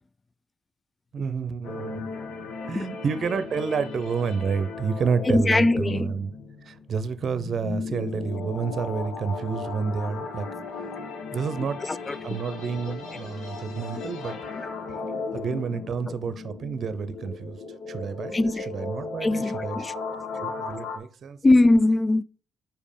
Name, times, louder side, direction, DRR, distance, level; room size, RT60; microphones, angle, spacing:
voice 1, 1.1-2.1 2.7-6.3 6.6-10.5 11.3-11.8 12.2-14.4 14.9-15.1 15.3-17.6 17.9-19.8 20.3-21.4, right 5 dB, 55° right, 0.7 m, -29 dB
Firefly Chatter, 1.6-21.0, left 4 dB, 80° left, 1.3 m, -36 dB
voice 2, 5.3-6.1 11.9-12.4 14.6-14.7 16.1-16.2 18.3-18.7 19.2-20.2 21.4-22.2, left 2 dB, 25° left, 0.3 m, -22 dB
5.2 x 4.6 x 5.3 m
cardioid pair, 90°, 0 cm